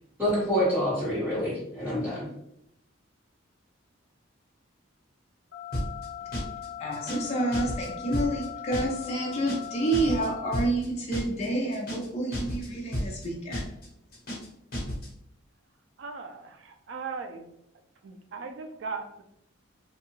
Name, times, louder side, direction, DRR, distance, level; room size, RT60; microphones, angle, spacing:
voice 1, 0.2-2.3, equal, 10° right, -9 dB, 1.4 m, -27 dB
sound 1, 5.5-10.5, left 11 dB, 75° left, 0.6 m, -40 dB
sound 2, 5.7-6.1 6.3-6.7 6.9-7.3 7.5-8.5 8.7-9.1 9.3-9.7 9.9-10.3 10.5-10.9 11.1-11.5 11.7-12.1 12.3-12.7 12.9-13.3 13.5-13.9 14.1-14.5 14.7-15.1, equal, 50° left, 1.0 m, -32 dB
voice 2, 6.8-13.6, right 1 dB, 30° left, -2 dB, 0.4 m, -29 dB
voice 3, 16.0-17.5 18.0-19.2, right 4 dB, 65° right, 5 dB, 0.4 m, -38 dB
2.6 x 2.3 x 2.9 m, 0.77 s
head